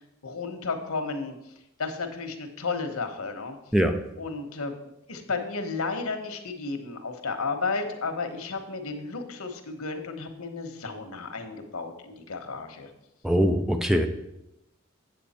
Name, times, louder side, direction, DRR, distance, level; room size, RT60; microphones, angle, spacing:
voice 1, 0.2-1.3 1.8-3.6 4.2-4.7 5.1-12.9, left 4 dB, 90° left, 6 dB, 1.2 m, -33 dB
voice 2, 13.2-14.1, equal, ahead, 6 dB, 0.5 m, -22 dB
8.5 x 8.1 x 4.3 m, 0.86 s
head